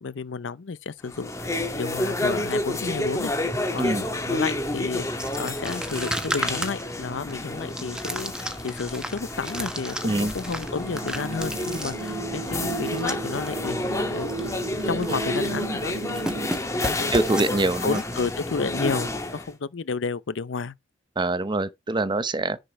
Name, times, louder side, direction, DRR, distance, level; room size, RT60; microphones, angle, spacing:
voice 1, 0.0-3.3 3.7-16.3 16.8-17.1 17.8-20.7, left 4 dB, 70° left, 0.6 m, -32 dB
sound 1, 1.0-19.5, left 1 dB, 15° left, 1.5 m, -30 dB
sound 2, 5.2-13.5 13.8-13.9 14.2-14.5 14.8-15.6 15.9-18.2, right 1 dB, 5° right, 1.2 m, -34 dB
voice 2, 10.0-10.3 17.1-18.0 21.2-22.6, right 2 dB, 25° right, 0.7 m, -24 dB
sound 3, 10.8-16.5, right 4 dB, 80° right, 0.6 m, -35 dB
10.0 x 5.1 x 4.5 m
head